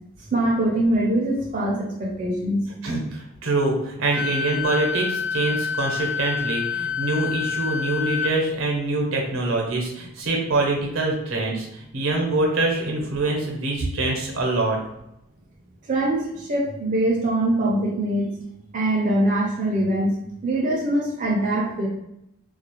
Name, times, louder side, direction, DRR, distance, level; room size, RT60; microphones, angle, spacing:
voice 1, 0.3-2.7 15.9-18.3 18.7-20.1 20.4-21.9, right 1 dB, 40° right, -3 dB, 0.4 m, -23 dB
voice 2, 2.8-14.8, right 2 dB, 85° right, 0 dB, 0.7 m, -24 dB
Wind instrument woodwind instrument, 4.1-8.3, left 6 dB, 60° left, 0.3 m, -27 dB
2.3 x 2.0 x 2.9 m, 0.81 s
head